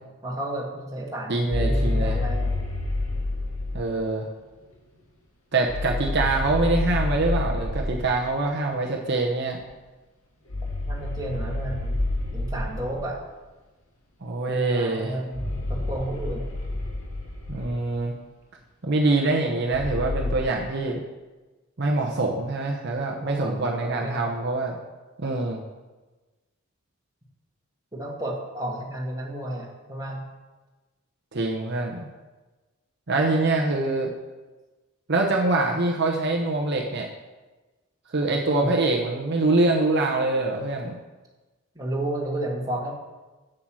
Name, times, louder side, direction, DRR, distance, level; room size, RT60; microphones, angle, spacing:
voice 1, 0.2-2.5 10.9-12.0 12.3-13.2 14.5-16.5 23.2-24.3 27.9-30.2 38.4-38.7 41.8-42.9, right 1 dB, 15° right, -3 dB, 1.9 m, -32 dB
voice 2, 1.3-2.2 3.7-4.3 5.5-9.6 14.2-15.2 17.5-18.2 18.8-21.0 21.8-24.8 25.2-25.6 31.3-32.1 33.1-34.1 35.1-37.1 38.1-41.0, right 2 dB, 50° right, 0 dB, 0.9 m, -24 dB
sound 1, 1.5-3.8 5.7-8.2 10.5-13.1 15.3-17.9 19.7-20.4, left 2 dB, 85° left, 2.2 m, -28 dB
7.8 x 7.7 x 6.2 m, 1.2 s
head